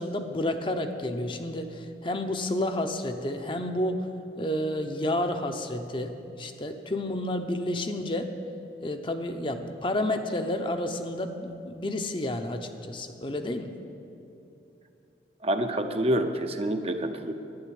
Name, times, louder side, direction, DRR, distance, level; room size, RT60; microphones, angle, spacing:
voice 1, 0.0-4.1 4.4-8.3 8.8-13.8, left 1 dB, 30° left, 6 dB, 0.7 m, -30 dB
voice 2, 15.4-17.3, right 1 dB, 35° right, 7 dB, 0.7 m, -27 dB
11.5 x 10.0 x 8.6 m, 2.7 s
head